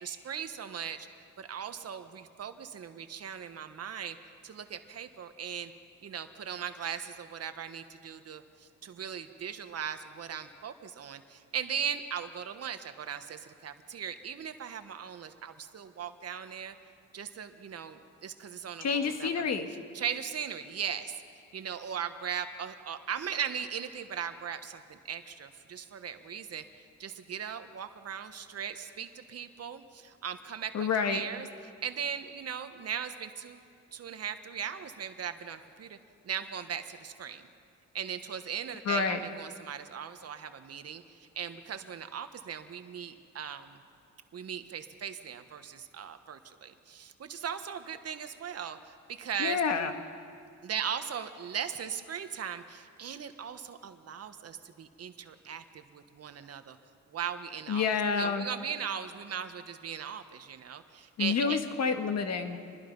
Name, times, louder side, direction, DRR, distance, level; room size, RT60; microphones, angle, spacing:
voice 1, 0.0-1.1 1.4-4.2 4.4-5.7 6.0-16.7 17.1-19.4 19.9-21.2 21.5-31.5 31.8-33.6 33.9-36.0 36.2-37.4 37.9-41.0 41.3-43.8 44.3-49.6 50.6-56.8 57.1-57.9 58.1-61.6, right 8 dB, 55° right, 8 dB, 1.4 m, -38 dB
voice 2, 18.8-19.7 30.7-31.2 38.9-39.2 49.4-49.9 57.7-58.5 61.2-62.6, left 5 dB, 60° left, 6 dB, 1.8 m, -28 dB
27.0 x 21.0 x 5.5 m, 2.4 s
cardioid pair, 90°, 30 cm